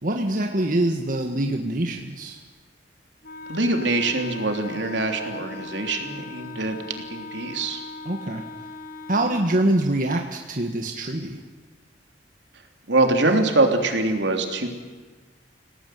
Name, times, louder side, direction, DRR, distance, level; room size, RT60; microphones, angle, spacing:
voice 1, 0.0-2.4 8.0-8.4 9.1-11.4, right 1 dB, 50° right, 3 dB, 1.7 m, -24 dB
Wind instrument woodwind instrument, 3.2-9.6, left 3 dB, 50° left, 1.1 m, -39 dB
voice 2, 3.5-6.8 7.1-7.8 12.9-14.7, right 2 dB, 80° right, 4 dB, 3.3 m, -23 dB
28.0 x 18.0 x 9.4 m, 1.3 s
head